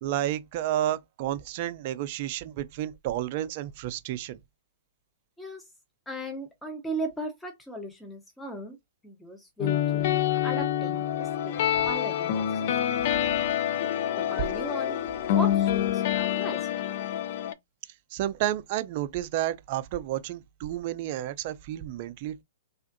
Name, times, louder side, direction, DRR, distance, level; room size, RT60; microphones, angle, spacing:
voice 1, 0.0-4.4 18.1-22.4, right 12 dB, 45° right, 0.4 m, -31 dB
voice 2, 6.1-8.8 9.0-12.7 14.2-15.0 15.3-16.7, right 1 dB, 5° left, 0.7 m, -37 dB
sound 1, 9.6-17.5, left 11 dB, 55° left, 0.4 m, -27 dB
3.4 x 2.5 x 2.5 m
hypercardioid pair, 130°, 0 cm